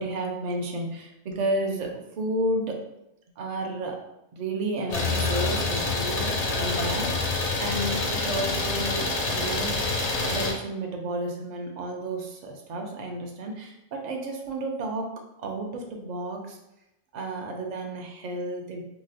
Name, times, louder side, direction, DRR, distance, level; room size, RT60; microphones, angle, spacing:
voice 1, 0.0-2.9 3.4-4.0 4.3-9.8 10.2-15.1 15.4-16.6 17.1-18.8, right 1 dB, 55° right, 2 dB, 0.5 m, -32 dB
Idling, 4.9-10.5, left 3 dB, 50° left, 0.5 m, -27 dB
3.9 x 2.1 x 2.6 m, 0.87 s
omnidirectional pair, 1.1 m